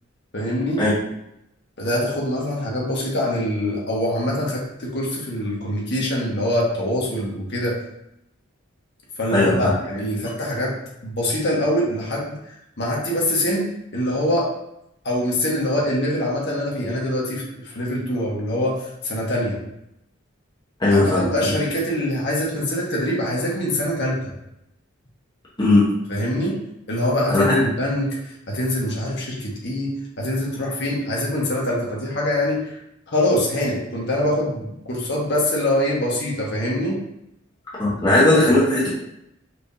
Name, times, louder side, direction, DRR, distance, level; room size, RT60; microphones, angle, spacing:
voice 1, 0.3-0.8 1.8-7.8 9.2-10.7 11.0-12.4 12.8-13.6 13.9-14.5 15.0-19.6 20.9-24.3 26.1-26.5 26.9-28.2 28.5-32.8 33.1-37.0, left 1 dB, 55° left, -4 dB, 1.3 m, -24 dB
voice 2, 9.3-9.7 20.8-21.5 25.6-25.9 27.3-27.6 37.8-38.9, left 2 dB, 20° left, -7 dB, 1.0 m, -17 dB
4.4 x 3.5 x 2.7 m, 0.83 s
head